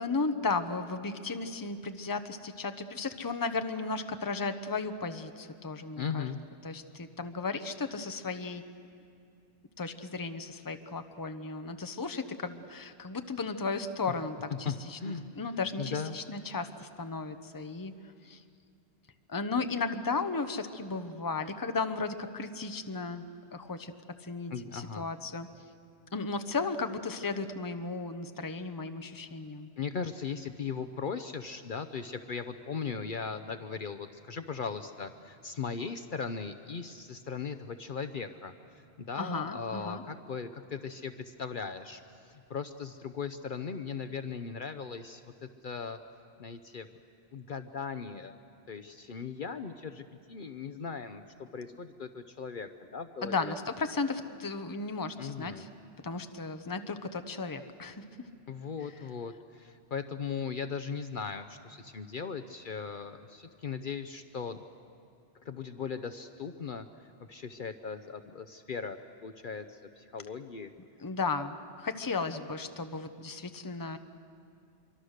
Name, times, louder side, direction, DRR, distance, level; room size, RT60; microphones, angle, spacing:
voice 1, 0.0-6.3 6.6-8.6 9.8-15.0 15.3-17.9 18.2-18.4 19.3-23.3 23.5-23.9 24.2-25.5 26.1-29.7 39.2-40.0 53.2-55.7 56.0-58.0 71.0-74.0, left 4 dB, 20° left, 9 dB, 0.8 m, -35 dB
voice 2, 6.0-6.4 14.6-15.3 15.8-16.2 24.5-25.0 29.8-38.5 39.0-46.0 46.4-46.9 47.3-48.3 48.7-53.6 55.2-55.6 58.5-64.6 65.4-66.9 67.3-70.7, left 5 dB, 55° left, 9 dB, 0.8 m, -38 dB
25.0 x 24.0 x 6.6 m, 2.4 s
omnidirectional pair, 1.1 m